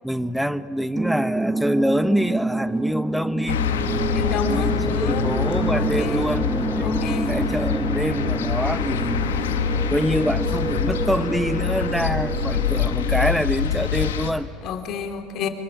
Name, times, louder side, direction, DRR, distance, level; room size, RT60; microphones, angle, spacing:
voice 1, 0.0-3.6 4.5-7.0 7.3-9.3 9.9-14.5, equal, ahead, 14 dB, 1.0 m, -25 dB
sound 1, 0.9-13.4, right 3 dB, 20° right, 1.3 m, -28 dB
sound 2, 3.5-14.3, left 7 dB, 85° left, 1.7 m, -25 dB
voice 2, 4.1-5.3 5.7-6.4 6.8-7.4 14.6-15.5, left 7 dB, 50° left, 6 dB, 3.1 m, -30 dB
24.5 x 24.0 x 9.9 m, 2.9 s
hypercardioid pair, 85°, 0 cm